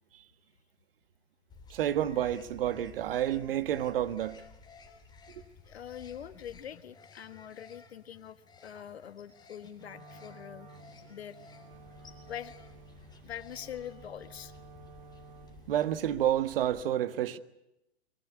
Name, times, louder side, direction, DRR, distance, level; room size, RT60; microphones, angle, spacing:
sound 1, 1.5-16.8, left 4 dB, 15° left, 3.4 m, -54 dB
voice 1, 1.7-4.4 5.3-5.4 15.7-17.4, right 11 dB, 60° right, 1.6 m, -29 dB
voice 2, 5.7-10.7 11.1-11.4 12.3-12.5 13.2-14.5, left 9 dB, 70° left, 1.7 m, -44 dB
Wind instrument woodwind instrument, 9.7-15.8, right 2 dB, 30° right, 2.3 m, -53 dB
23.5 x 22.5 x 8.3 m
hypercardioid pair, 120°, 32 cm